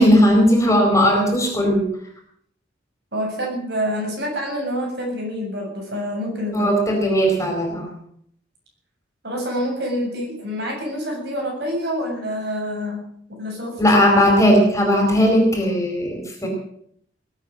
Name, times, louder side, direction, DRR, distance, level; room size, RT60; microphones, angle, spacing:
voice 1, 0.0-1.9 6.5-7.9 13.8-16.5, equal, 15° left, 1 dB, 4.6 m, -17 dB
voice 2, 3.1-6.7 9.2-13.0 13.3-13.8, equal, 60° right, 0 dB, 7.5 m, -27 dB
20.0 x 9.0 x 7.7 m, 0.67 s
head